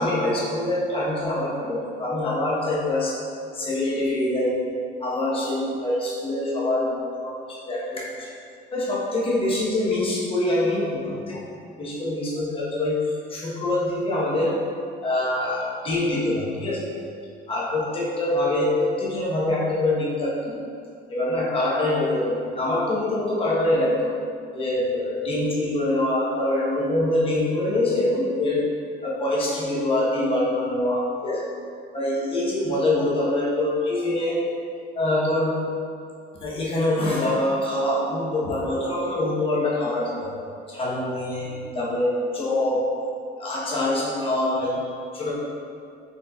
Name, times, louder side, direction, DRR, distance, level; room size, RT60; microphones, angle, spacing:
voice 1, 0.0-3.2 3.5-4.7 5.0-8.3 8.7-11.5 11.8-14.7 15.0-16.9 17.5-20.6 21.1-24.2 24.5-31.5 31.9-34.5 34.9-35.6 36.4-40.3 40.7-42.9 43.4-44.9 45.1-45.3, left 1 dB, 35° left, -5 dB, 0.9 m, -24 dB
3.9 x 3.8 x 2.3 m, 2.4 s
cardioid pair, 110°, 17 cm